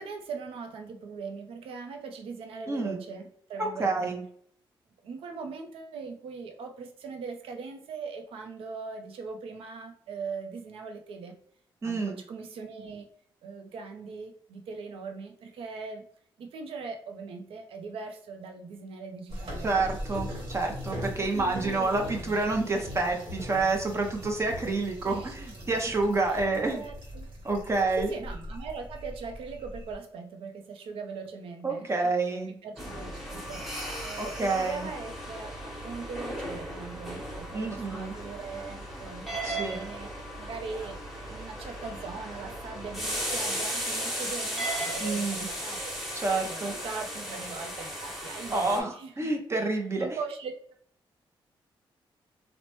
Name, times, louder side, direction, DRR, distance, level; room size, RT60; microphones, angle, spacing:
voice 1, 0.0-4.2 5.0-11.4 11.8-13.1 13.4-16.0 16.4-19.8 21.2-22.1 22.7-22.8 25.0-25.3 26.3-27.3 28.1-33.7 34.0-41.0 41.2-46.0 46.5-49.3 50.0-50.5, right 4 dB, 85° right, 5 dB, 0.5 m, -40 dB
voice 2, 2.7-3.0 3.6-4.2 11.8-12.2 19.6-26.8 27.4-28.1 31.6-32.5 34.2-34.9 37.5-38.1 39.4-39.8 45.0-45.4 46.1-46.7 48.5-50.1, right 3 dB, 30° right, 2 dB, 0.5 m, -28 dB
sound 1, 19.3-29.9, equal, 70° right, 1.1 m, -40 dB
sound 2, 32.8-48.8, equal, ahead, 1.0 m, -36 dB
3.0 x 2.0 x 3.0 m, 0.63 s
cardioid pair, 90°, 9 cm